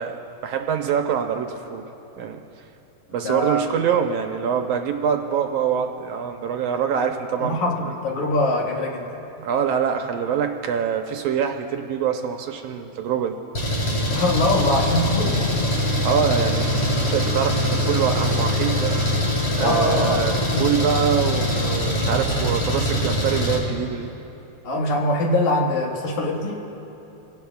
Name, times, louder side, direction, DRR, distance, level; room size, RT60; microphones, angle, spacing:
voice 1, 0.0-1.8 2.2-2.4 3.1-7.6 9.4-13.4 16.0-16.7 17.0-18.9 19.5-24.1, right 7 dB, 75° right, 4 dB, 1.6 m, -24 dB
voice 2, 3.2-3.8 7.4-9.1 14.1-15.4 19.6-20.7 24.6-26.6, left 1 dB, 75° left, -1 dB, 3.1 m, -23 dB
Engine, 13.6-23.6, left 1 dB, 55° left, 4.1 m, -23 dB
26.0 x 17.5 x 2.4 m, 3.0 s
omnidirectional pair, 3.4 m